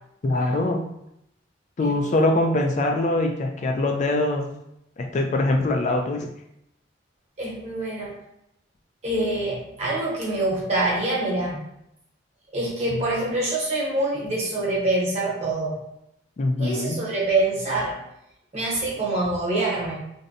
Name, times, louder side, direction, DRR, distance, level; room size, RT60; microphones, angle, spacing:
voice 1, 0.2-0.8 1.8-4.5 5.0-6.3 16.4-17.0, left 2 dB, 40° left, 3 dB, 0.3 m, -23 dB
voice 2, 1.8-2.2 7.4-8.1 9.0-11.7 12.5-15.8 16.6-18.0 18.5-20.0, right 2 dB, 35° right, -5 dB, 0.8 m, -25 dB
2.6 x 2.1 x 2.5 m, 0.80 s
head